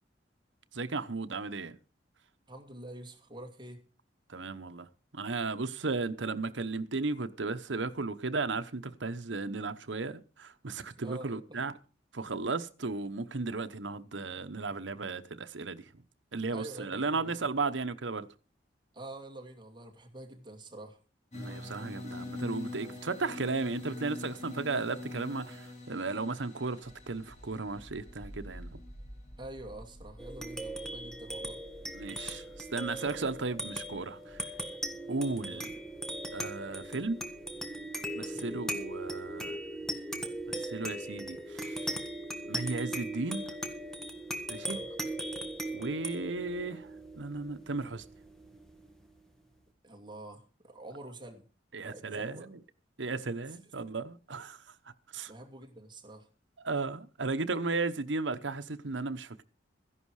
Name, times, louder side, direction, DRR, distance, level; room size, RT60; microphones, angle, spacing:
voice 1, 0.7-1.8 4.3-11.7 12.1-15.9 16.3-18.3 21.3-28.8 31.9-34.5 35.1-35.8 36.3-37.2 38.1-39.6 40.5-41.9 42.4-43.5 44.5-44.8 45.7-48.0 51.7-52.6 53.0-54.8 55.1-55.3 56.6-59.4, right 3 dB, 80° right, 1.0 m, -35 dB
voice 2, 2.5-3.8 11.0-11.6 16.5-17.5 18.9-21.0 29.4-31.6 35.5-35.7 38.3-38.5 44.6-44.9 49.8-51.4 51.8-52.5 55.3-56.3, right 1 dB, 25° right, 2.5 m, -47 dB
sound 1, 21.3-30.1, left 2 dB, 40° left, 3.6 m, -44 dB
sound 2, 26.8-37.5, equal, 55° left, 6.8 m, -52 dB
sound 3, 30.2-49.0, right 1 dB, 5° left, 1.6 m, -39 dB
14.5 x 11.0 x 4.9 m
head